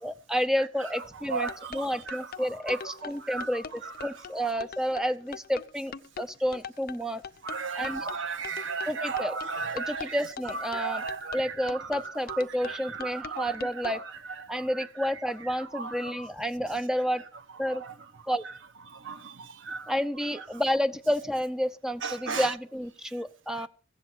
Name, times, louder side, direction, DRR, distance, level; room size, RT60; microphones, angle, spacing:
voice 1, 0.0-7.2 7.7-8.1 8.9-9.4 9.7-11.0 11.3-14.0 14.5-17.2 17.6-17.8 18.3-18.4 19.9-23.7, equal, 5° right, 0.6 m, -30 dB
sound 1, 1.2-14.0, left 6 dB, 50° left, 0.5 m, -42 dB
voice 2, 1.3-2.2 2.7-2.8 3.3-3.5 3.8-4.1 7.4-10.2 10.7-11.4 11.9-12.0 12.3-12.4 12.7-14.0 14.5-14.6 15.7-16.3 17.8-17.9 18.9-19.9 22.0-22.5, right 5 dB, 70° right, 0.8 m, -35 dB
15.5 x 7.7 x 6.0 m
head